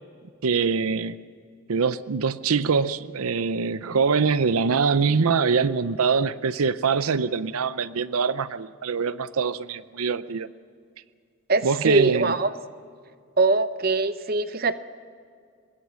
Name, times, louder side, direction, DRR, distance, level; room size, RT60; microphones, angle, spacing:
voice 1, 0.4-1.2 1.7-10.5 11.6-12.3, right 5 dB, 90° right, 0.6 m, -23 dB
voice 2, 11.5-12.5 13.4-14.8, right 3 dB, 45° right, 0.7 m, -22 dB
25.0 x 21.0 x 6.3 m
head